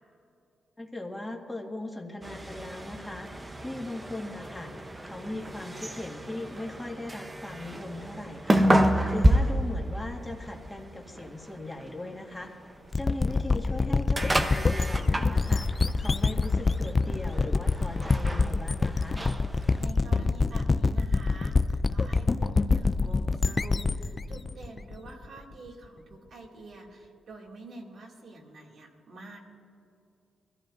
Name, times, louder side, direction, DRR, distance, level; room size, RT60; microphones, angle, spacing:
voice 1, 0.8-3.3 3.6-8.7 9.1-12.5 13.0-19.2, left 1 dB, 10° left, 0 dB, 2.0 m, -39 dB
sound 1, 2.2-19.9, right 1 dB, 20° right, 0.9 m, -30 dB
sound 2, 12.9-25.5, left 3 dB, 35° left, 0.4 m, -26 dB
voice 2, 19.8-29.4, right 2 dB, 65° right, -1 dB, 2.6 m, -47 dB
22.0 x 14.5 x 2.7 m, 2.7 s
cardioid pair, 75°, 0 cm